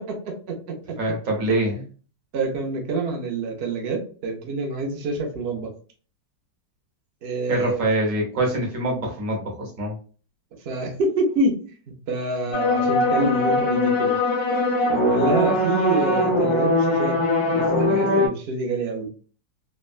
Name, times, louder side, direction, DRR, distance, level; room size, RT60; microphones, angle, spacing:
voice 1, 0.0-1.2 2.3-5.7 7.2-7.9 10.6-11.6 12.1-14.1 14.9-17.2 17.5-19.1, right 2 dB, 85° right, 2 dB, 0.5 m, -27 dB
voice 2, 1.0-1.8 7.5-9.9, right 1 dB, 50° right, -1 dB, 1.2 m, -24 dB
sound 1, 12.5-18.3, left 2 dB, 65° left, 1.2 m, -21 dB
3.4 x 2.1 x 2.3 m, 0.40 s
omnidirectional pair, 1.9 m